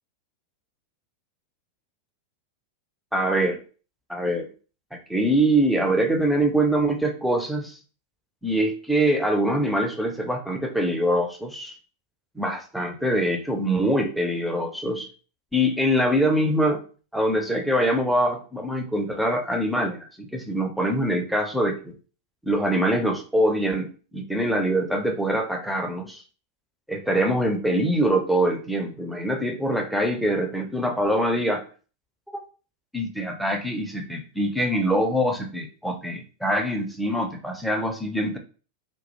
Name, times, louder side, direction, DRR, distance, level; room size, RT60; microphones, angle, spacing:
voice 1, 3.1-3.6 4.1-4.5 4.9-7.8 8.4-11.7 12.4-15.1 15.5-16.8 17.1-20.1 20.3-21.9 22.4-26.2 26.9-31.6 32.3-32.4 32.9-38.4, right 1 dB, ahead, 3 dB, 0.4 m, -24 dB
2.2 x 2.0 x 2.9 m, 0.38 s
figure-of-eight pair, 90°, 0 cm